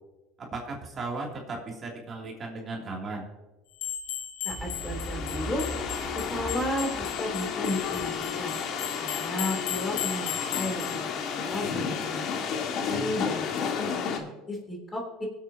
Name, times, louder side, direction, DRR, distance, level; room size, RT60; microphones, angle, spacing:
voice 1, 0.5-3.3, right 3 dB, 35° right, 0 dB, 3.0 m, -36 dB
sound 1, 3.8-11.0, left 10 dB, 80° left, 2.0 m, -37 dB
voice 2, 4.4-5.6 6.2-6.9 7.2-8.6 9.0-12.2 12.5-13.5 13.8-15.3, left 1 dB, 15° left, 1 dB, 3.5 m, -34 dB
sound 2, 4.5-14.2, left 6 dB, 55° left, 2.0 m, -32 dB
sound 3, 4.5-8.3, right 2 dB, 10° right, 0.9 m, -40 dB
22.5 x 8.3 x 2.9 m, 1.1 s
supercardioid pair, 95°, 0 cm